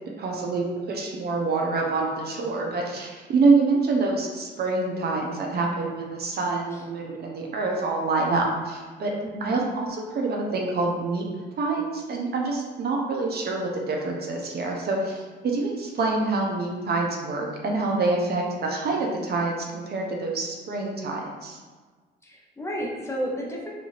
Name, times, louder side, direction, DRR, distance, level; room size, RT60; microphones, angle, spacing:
voice 1, 0.2-9.1 9.4-11.2 11.6-21.6, right 3 dB, 55° right, 0 dB, 0.6 m, -26 dB
voice 2, 9.2-9.6 22.2-23.7, equal, 15° left, -3 dB, 0.6 m, -32 dB
2.6 x 2.4 x 3.1 m, 1.4 s
cardioid pair, 90°, 20 cm